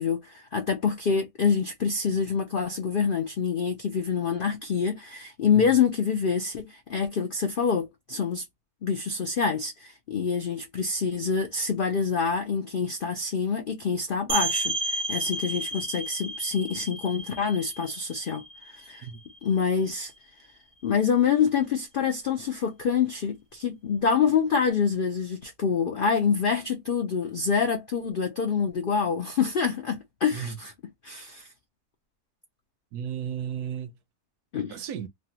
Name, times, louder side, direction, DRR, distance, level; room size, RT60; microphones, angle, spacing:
voice 1, 0.0-8.4 8.8-19.1 19.4-20.1 20.8-30.7 31.0-31.5 34.5-34.8, left 6 dB, 85° left, 0.4 m, -26 dB
sound 1, 14.3-19.8, right 2 dB, 60° right, 0.7 m, -32 dB
voice 2, 32.9-33.9 34.7-35.1, right 8 dB, 80° right, 1.1 m, -34 dB
3.3 x 2.2 x 2.7 m
omnidirectional pair, 1.6 m